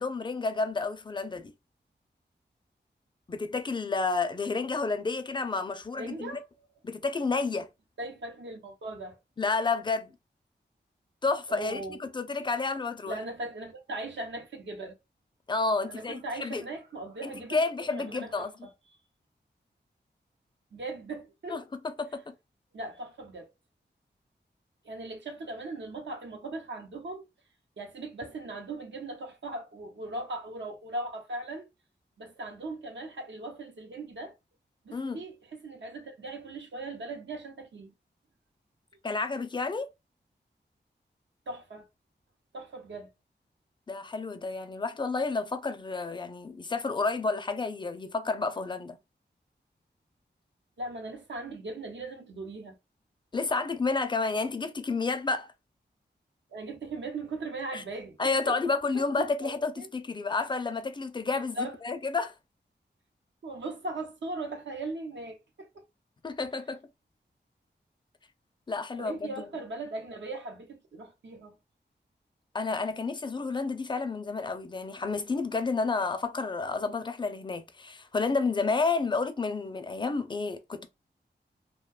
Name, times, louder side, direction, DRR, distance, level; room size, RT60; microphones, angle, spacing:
voice 1, 0.0-1.5 3.3-6.3 6.8-7.7 9.4-10.1 11.2-13.2 15.5-16.6 17.2-18.5 21.5-22.3 34.9-35.2 39.0-39.9 43.9-49.0 53.3-55.5 57.7-57.8 58.2-62.3 66.2-66.8 68.7-69.5 72.5-80.9, left 4 dB, 25° left, 0.4 m, -30 dB
voice 2, 6.0-6.4 8.0-9.2 11.5-12.0 13.1-14.9 15.9-17.6 17.9-18.7 20.7-21.6 22.7-23.5 24.8-27.3 27.8-31.7 32.2-34.4 34.8-37.9 41.5-41.9 42.5-43.1 50.8-52.8 56.5-58.6 58.9-59.0 59.4-59.9 61.3-61.8 63.4-65.8 69.0-71.5, right 2 dB, 80° right, 0.7 m, -39 dB
2.6 x 2.2 x 2.3 m
wide cardioid pair, 65°, 19 cm